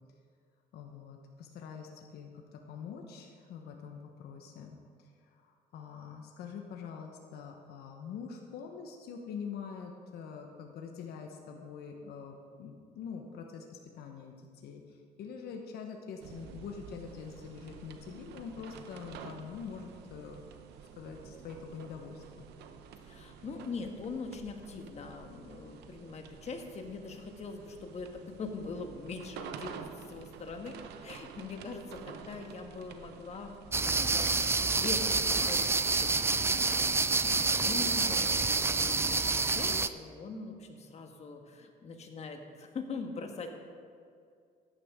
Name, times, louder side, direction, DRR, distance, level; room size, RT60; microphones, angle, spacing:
voice 1, 0.7-4.8 5.3-14.3 14.6-20.4 21.0-22.5, left 6 dB, 70° left, 2 dB, 1.1 m, -44 dB
sound 1, 16.2-36.1, right 7 dB, 80° right, 0.8 m, -50 dB
voice 2, 23.0-33.6 33.8-43.5, left 4 dB, 40° left, 4 dB, 1.4 m, -42 dB
sound 2, 33.7-39.9, right 3 dB, 15° right, 0.4 m, -28 dB
13.5 x 10.0 x 3.7 m, 2.3 s
cardioid pair, 110°, 17 cm